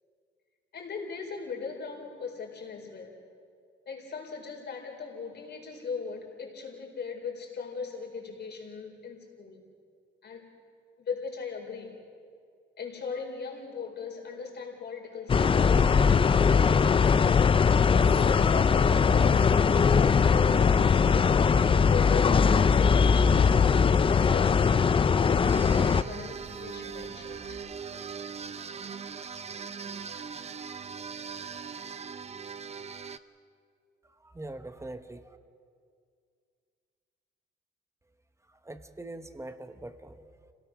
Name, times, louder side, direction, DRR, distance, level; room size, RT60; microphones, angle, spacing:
voice 1, 0.7-3.1 3.8-9.7 10.2-10.6 11.0-12.0 12.8-17.4 18.2-24.7 25.4-27.6, left 5 dB, 60° left, -1 dB, 4.6 m, -39 dB
sound 1, 15.3-26.0, left 6 dB, 25° left, 0.4 m, -21 dB
sound 2, 19.6-27.6, right 4 dB, 70° right, 5.4 m, -48 dB
sound 3, 25.5-33.2, right 6 dB, 30° right, 0.7 m, -40 dB
voice 2, 34.0-35.4 38.5-40.5, right 2 dB, 15° right, 9 dB, 1.1 m, -43 dB
27.5 x 17.5 x 6.3 m, 2.2 s
cardioid pair, 90°, 20 cm